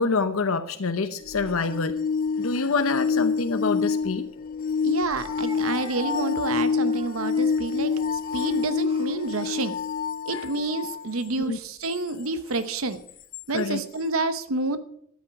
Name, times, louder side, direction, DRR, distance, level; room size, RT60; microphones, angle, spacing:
voice 1, 0.0-2.0 2.4-4.3 10.3-10.4 11.4-11.6 13.5-13.8, left 4 dB, 80° left, 9 dB, 0.8 m, -26 dB
sound 1, 1.3-11.0 13.3-13.4, left 5 dB, 40° left, 0.4 m, -27 dB
Speech, 4.1-4.2 5.2-10.1 10.9-11.1 12.1-12.6, right 1 dB, 25° right, 3.6 m, -44 dB
voice 2, 4.8-9.7 10.3-13.0 13.5-14.8, right 3 dB, 80° right, 11 dB, 1.0 m, -29 dB
13.5 x 9.4 x 5.9 m, 0.66 s
head